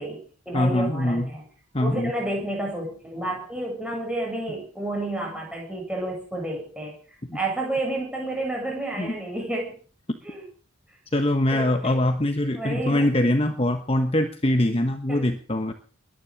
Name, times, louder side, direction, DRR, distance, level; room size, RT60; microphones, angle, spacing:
voice 1, 0.0-1.4 1.8-7.0 7.3-9.8 10.2-10.5 11.5-12.0 12.5-13.1 15.1-15.3, right 1 dB, 5° right, 0 dB, 7.8 m, -30 dB
voice 2, 0.5-1.3 1.7-2.1 7.3-7.4 9.0-9.2 11.1-15.7, left 1 dB, 30° left, 7 dB, 1.2 m, -23 dB
21.5 x 10.5 x 6.5 m, 0.41 s
head